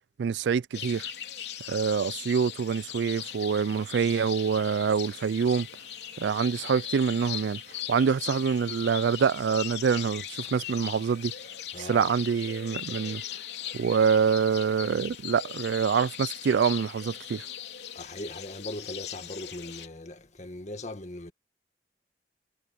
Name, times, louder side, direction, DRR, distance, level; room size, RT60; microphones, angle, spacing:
voice 1, 0.2-1.1 1.7-5.7 6.2-7.6 7.9-11.3 11.8-13.2 13.7-17.5, right 6 dB, 85° right, 0.4 m, -26 dB
sound 1, 0.7-19.9, left 10 dB, 75° left, 3.2 m, -39 dB
voice 2, 11.7-12.1 18.0-21.3, left 1 dB, 40° left, 2.0 m, -39 dB
head